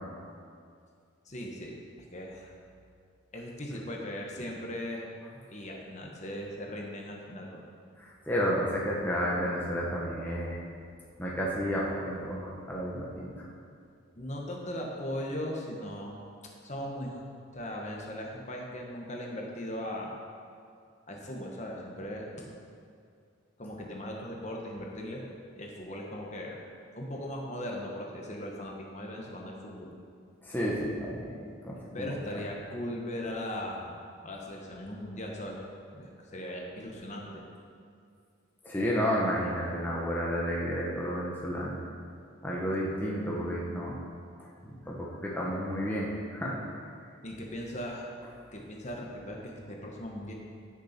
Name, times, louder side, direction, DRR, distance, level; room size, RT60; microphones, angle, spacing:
voice 1, 1.2-2.5 3.3-5.1 5.5-7.6 14.2-16.2 16.6-17.2 17.5-20.1 21.1-22.5 23.6-25.2 25.5-26.6 26.9-29.9 31.9-33.9 34.2-35.6 35.9-37.4 47.2-48.1 48.5-50.3, left 1 dB, 35° left, -1 dB, 1.3 m, -38 dB
voice 2, 8.0-10.6 11.2-13.5 30.4-32.1 38.6-41.8 42.4-44.0 44.4-46.6, equal, 10° left, -5 dB, 1.2 m, -31 dB
16.0 x 6.7 x 4.4 m, 2.3 s
head